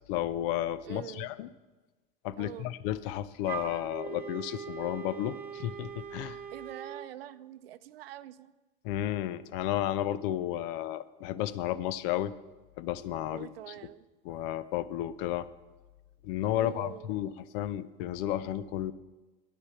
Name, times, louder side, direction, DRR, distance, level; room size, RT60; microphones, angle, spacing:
voice 1, 0.1-1.5 2.2-6.4 8.8-12.3 12.8-13.9 14.2-15.5 16.2-18.9, left 12 dB, 70° left, 16 dB, 0.6 m, -33 dB
voice 2, 0.8-1.3 2.4-2.7 6.5-8.5 13.3-14.1 16.5-17.1, right 13 dB, 90° right, 15 dB, 0.5 m, -45 dB
Wind instrument woodwind instrument, 3.4-7.1, right 8 dB, 30° right, 1.2 m, -41 dB
9.8 x 8.6 x 5.8 m, 1.2 s
hypercardioid pair, 90°, 29 cm